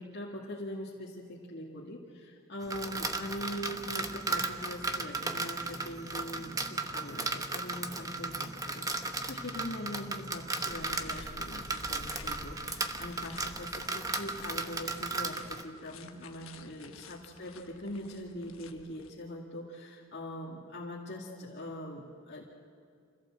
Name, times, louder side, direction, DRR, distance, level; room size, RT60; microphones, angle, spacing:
voice 1, 0.0-22.4, left 1 dB, 55° left, -4 dB, 2.1 m, -42 dB
sound 1, 2.6-15.6, right 3 dB, 15° right, 1.1 m, -36 dB
sound 2, 10.6-19.1, left 3 dB, 90° left, 1.3 m, -51 dB
26.5 x 16.0 x 7.6 m, 2.4 s
head